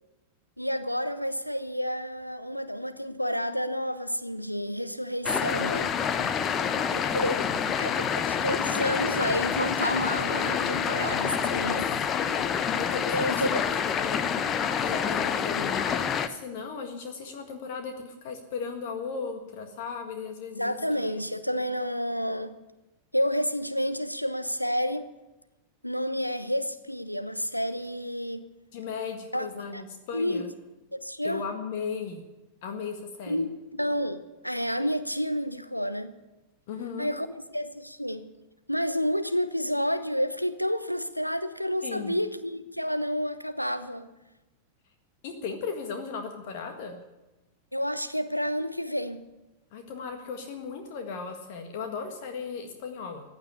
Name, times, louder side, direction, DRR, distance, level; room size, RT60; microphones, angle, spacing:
voice 1, 0.6-5.9 7.1-7.4 7.7-11.9 13.1-13.6 20.5-22.5 23.1-25.0 25.8-28.5 29.3-29.5 29.7-29.8 30.1-30.5 30.9-31.4 33.3-36.1 37.0-37.3 37.5-38.3 38.7-44.1 47.7-49.2, equal, 90° left, 0.9 m, -30 dB
sound 1, 5.2-16.3, left 7 dB, 25° left, 1.0 m, -27 dB
voice 2, 6.5-7.5 12.1-12.4 12.7-13.7 14.0-14.3 14.8-21.1 28.7-30.5 31.2-32.2 32.6-33.5 36.7-37.1 41.8-42.1 45.2-47.0 49.7-53.2, left 5 dB, 50° left, 1.7 m, -36 dB
15.5 x 9.6 x 9.7 m
figure-of-eight pair, 90°, 0 cm